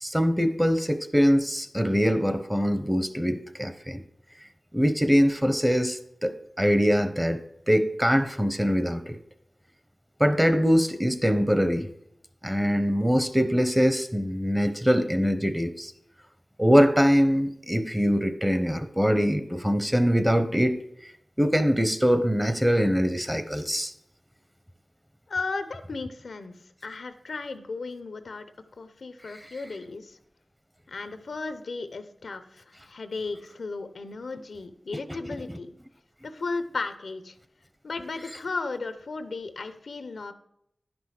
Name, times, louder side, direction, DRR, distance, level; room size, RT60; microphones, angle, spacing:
voice 1, 0.0-4.0 4.7-7.4 7.7-9.2 10.2-11.9 12.4-15.9 16.6-20.8 21.4-23.9 35.2-35.6, equal, 5° right, 9 dB, 0.9 m, -23 dB
voice 2, 25.3-26.5 26.8-28.5 28.8-30.2 30.9-35.7 36.2-37.4 37.8-40.3, left 3 dB, 90° left, 11 dB, 0.7 m, -35 dB
10.5 x 6.0 x 4.8 m, 0.74 s
wide cardioid pair, 70°, 0 cm